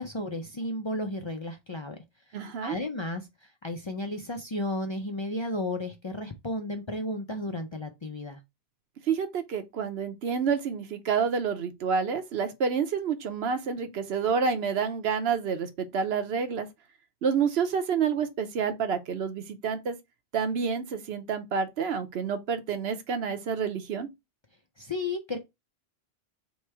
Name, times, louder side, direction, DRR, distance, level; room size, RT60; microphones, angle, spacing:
voice 1, 0.0-2.0 2.3-8.4 24.8-25.4, left 1 dB, 40° left, 0.4 m, -33 dB
voice 2, 2.3-2.7 9.1-16.7 17.2-20.0 20.3-24.1, right 6 dB, 75° right, 1.0 m, -28 dB
3.2 x 3.1 x 4.6 m
omnidirectional pair, 1.1 m